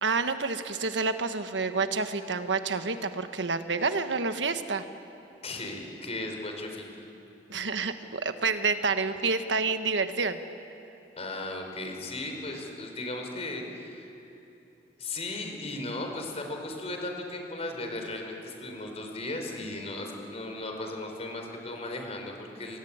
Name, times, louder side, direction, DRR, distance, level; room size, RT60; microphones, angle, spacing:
voice 1, 0.0-4.8 7.5-10.4, right 4 dB, 85° right, 8 dB, 1.4 m, -28 dB
voice 2, 5.4-6.8 11.2-14.3 15.0-22.8, left 2 dB, 35° left, 3 dB, 4.7 m, -36 dB
29.0 x 23.0 x 8.9 m, 3.0 s
head